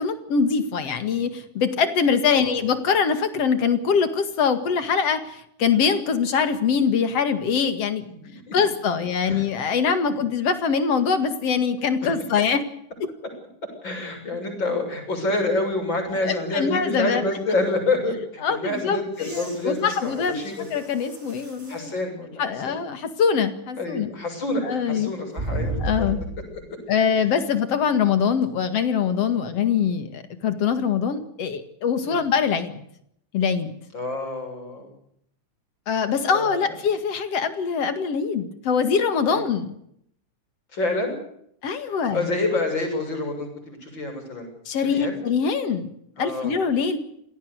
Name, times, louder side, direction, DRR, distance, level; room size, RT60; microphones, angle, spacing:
voice 1, 0.0-8.0 8.5-12.6 16.2-17.3 18.4-20.4 20.7-21.9 22.4-24.1 24.6-25.1 25.8-26.2 26.9-32.8 33.3-33.8 35.9-39.7 41.6-42.3 44.7-45.9 46.2-47.0, left 6 dB, 55° left, 10 dB, 2.9 m, -23 dB
voice 2, 8.0-8.6 9.2-9.4 10.1-10.2 13.8-20.7 21.7-22.8 23.8-26.1 32.0-32.2 33.9-34.9 36.2-36.7 39.3-39.4 40.7-41.2 41.8-44.5 44.8-45.2 46.2-46.5, left 2 dB, 35° left, 4 dB, 7.6 m, -28 dB
sound 1, 19.1-21.9 22.5-22.6 25.3-26.6 28.4-28.5, right 1 dB, 20° right, 4.9 m, -33 dB
27.0 x 18.0 x 6.6 m, 0.71 s
omnidirectional pair, 3.6 m